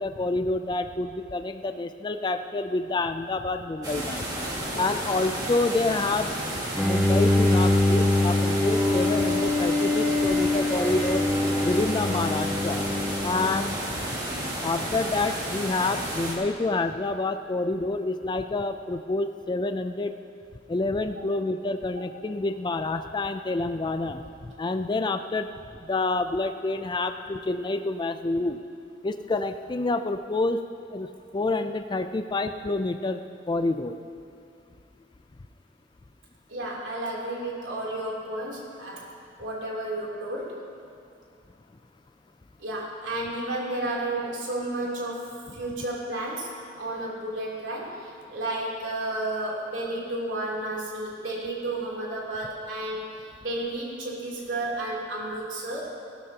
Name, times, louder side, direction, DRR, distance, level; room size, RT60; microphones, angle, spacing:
voice 1, 0.0-4.3 4.8-6.3 6.8-11.3 11.6-12.8 13.2-13.8 14.6-20.1 20.7-24.2 24.6-25.5 25.8-28.6 29.0-30.6 30.9-31.1 31.3-33.2 33.5-34.0, left 2 dB, 25° left, 8 dB, 0.4 m, -28 dB
sound 1, 3.8-16.4, right 1 dB, 20° right, 2.0 m, -32 dB
Bowed string instrument, 6.7-14.0, left 2 dB, ahead, 0.9 m, -24 dB
voice 2, 36.5-39.1 39.4-40.7 42.6-55.9, right 1 dB, 90° right, -4 dB, 3.1 m, -32 dB
17.0 x 12.5 x 2.9 m, 2.6 s
head